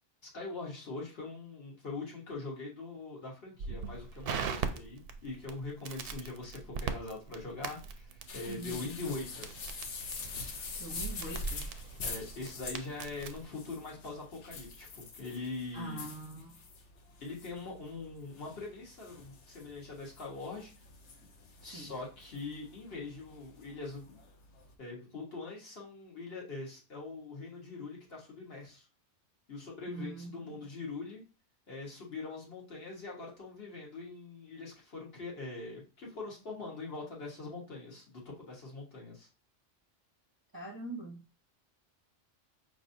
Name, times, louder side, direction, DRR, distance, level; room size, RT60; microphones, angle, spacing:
voice 1, 0.2-9.5 12.0-16.0 17.2-20.7 21.6-24.2 24.8-28.9 29.5-31.2 31.7-39.3, left 3 dB, 55° left, -2 dB, 1.5 m, -42 dB
Crackle, 3.6-13.5, right 6 dB, 60° right, 0.7 m, -41 dB
sound 1, 8.3-24.7, left 3 dB, 75° left, 1.0 m, -45 dB
voice 2, 8.5-8.9 10.8-11.7 15.7-16.6 21.6-21.9 29.9-30.7 40.5-41.2, right 2 dB, 25° right, -2 dB, 0.6 m, -43 dB
5.1 x 3.2 x 2.6 m, 0.34 s
omnidirectional pair, 1.2 m